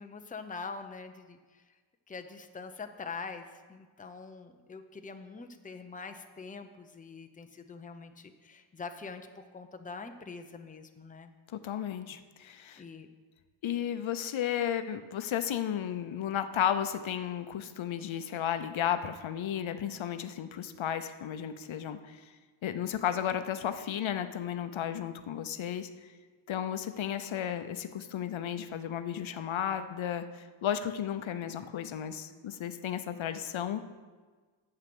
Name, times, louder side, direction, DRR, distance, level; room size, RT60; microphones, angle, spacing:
voice 1, 0.0-1.4 2.1-9.3 9.5-11.3 12.8-13.1, left 4 dB, 15° left, 6 dB, 0.6 m, -44 dB
voice 2, 11.5-12.8 13.6-22.3 22.6-25.9 26.5-33.8, left 9 dB, 75° left, 10 dB, 0.7 m, -33 dB
8.9 x 7.7 x 6.1 m, 1.4 s
wide cardioid pair, 115°, 48 cm